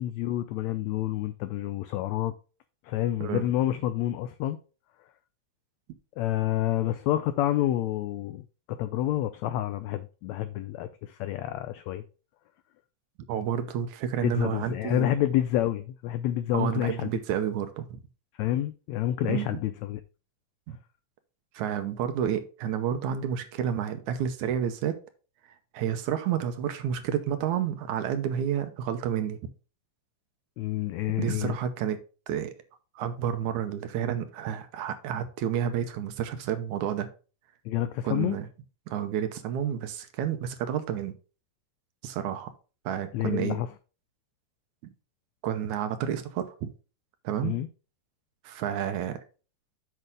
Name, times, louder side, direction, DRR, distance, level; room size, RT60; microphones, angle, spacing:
voice 1, 0.0-2.3 2.8-4.6 6.2-8.4 8.7-12.0 14.2-17.1 18.4-20.0 30.6-31.6 37.6-38.4 43.1-43.7 47.4-47.7, left 13 dB, 90° left, 1.5 m, -28 dB
voice 2, 13.3-15.1 16.5-18.0 19.3-19.6 20.7-20.8 21.5-25.0 25.7-29.4 31.2-32.0 32.3-32.5 33.0-37.1 38.0-38.5 38.9-41.1 42.0-42.5 42.9-43.6 45.4-46.7 47.2-47.6 48.4-49.2, right 9 dB, 75° right, 2.0 m, -30 dB
8.3 x 6.0 x 3.6 m
omnidirectional pair, 3.8 m